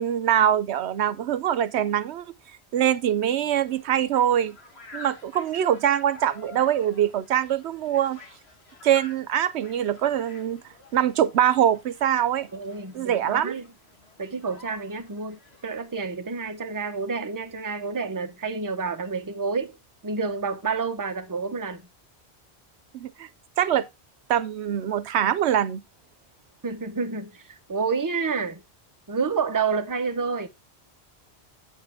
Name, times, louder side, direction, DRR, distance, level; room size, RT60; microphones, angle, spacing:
voice 1, 0.0-2.2 2.7-4.6 4.9-8.2 8.8-10.6 10.9-12.5 12.9-13.5 22.9-23.3 23.6-23.9 24.3-25.8, right 10 dB, 80° right, 0.9 m, -23 dB
sound 1, 3.4-16.0, left 3 dB, 70° left, 2.1 m, -49 dB
voice 2, 12.5-13.7 14.2-19.8 20.0-21.8 26.6-28.6 29.1-30.5, right 5 dB, 20° right, 0.8 m, -29 dB
9.1 x 7.4 x 3.5 m
omnidirectional pair, 1.1 m